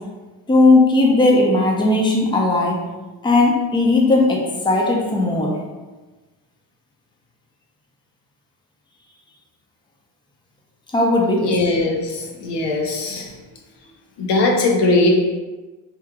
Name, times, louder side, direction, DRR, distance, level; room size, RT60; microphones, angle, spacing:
voice 1, 0.5-2.8 3.2-4.4 4.6-5.5 10.9-11.5, left 2 dB, 10° left, -2 dB, 0.6 m, -16 dB
voice 2, 11.4-13.3 14.2-15.1, left 2 dB, 70° left, 1 dB, 0.8 m, -20 dB
3.1 x 2.3 x 3.6 m, 1.2 s
cardioid pair, 110°, 44 cm